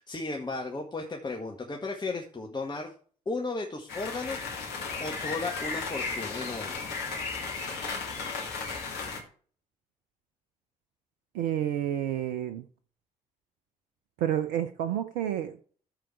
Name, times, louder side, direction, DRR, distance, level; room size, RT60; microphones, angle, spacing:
voice 1, 0.0-2.9 3.3-4.6 5.0-6.8, left 3 dB, 25° left, 1 dB, 1.8 m, -35 dB
sound 1, 3.9-9.2, left 4 dB, 60° left, 2.5 m, -35 dB
voice 2, 11.3-12.6 14.2-15.6, right 11 dB, 65° right, 10 dB, 0.7 m, -29 dB
13.5 x 4.8 x 4.6 m, 0.43 s
figure-of-eight pair, 40°, 19 cm